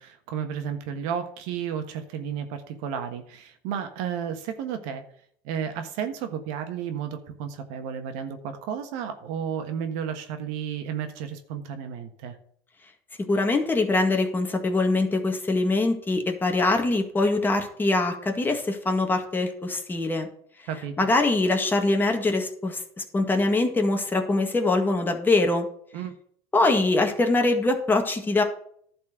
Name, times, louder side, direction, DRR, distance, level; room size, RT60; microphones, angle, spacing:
voice 1, 0.0-5.0 5.4-12.3 20.7-21.0 25.9-26.1, right 8 dB, 75° right, 7 dB, 1.4 m, -32 dB
voice 2, 13.3-20.3 21.0-25.7 26.5-28.4, left 2 dB, 15° left, 4 dB, 1.8 m, -23 dB
11.0 x 4.4 x 7.8 m, 0.63 s
supercardioid pair, 110°, 11 cm